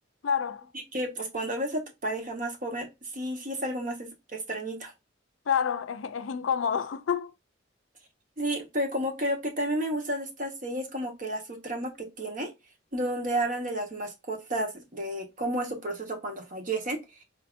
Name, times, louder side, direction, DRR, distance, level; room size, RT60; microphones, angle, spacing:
voice 1, 0.2-0.7 5.5-7.3, left 7 dB, 90° left, 0.5 m, -28 dB
voice 2, 0.9-2.9 3.1-4.9 8.4-12.5 12.9-17.0, right 1 dB, 45° right, 1.2 m, -31 dB
4.8 x 2.7 x 2.5 m
head